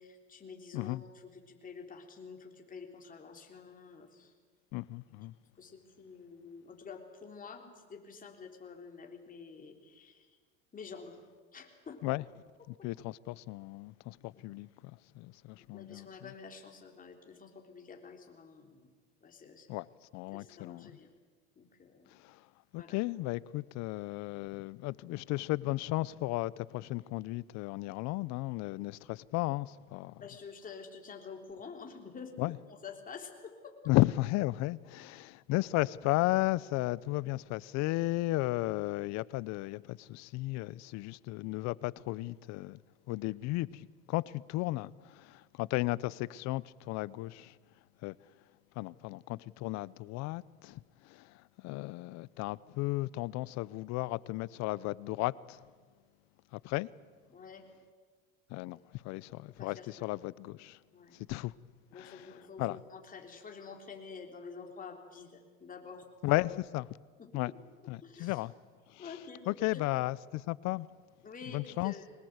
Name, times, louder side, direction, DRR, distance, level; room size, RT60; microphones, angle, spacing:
voice 1, 0.0-4.3 5.6-10.4 10.7-11.2 11.5-12.0 14.3-14.4 15.6-18.9 19.2-19.7 20.3-21.1 21.6-22.2 22.8-23.0 28.9-29.0 30.2-33.9 57.3-57.6 59.5-60.1 60.9-61.2 61.9-66.1 67.2-67.3 68.0-68.4 69.0-69.8 71.2-72.0, left 5 dB, 25° left, 3.6 m, -49 dB
voice 2, 4.7-5.3 12.0-12.2 12.7-16.3 19.7-19.9 20.1-20.9 22.1-22.4 22.7-30.2 32.4-32.6 33.9-42.8 43.1-47.6 48.0-48.2 48.8-55.6 56.5-56.9 58.5-60.8 61.1-61.5 62.0-62.2 62.6-62.8 66.2-67.0 67.3-67.5 67.9-68.5 68.9-69.1 69.5-70.9 71.5-71.9, left 19 dB, 60° left, 0.7 m, -34 dB
23.0 x 19.5 x 8.1 m
supercardioid pair, 110°, 31 cm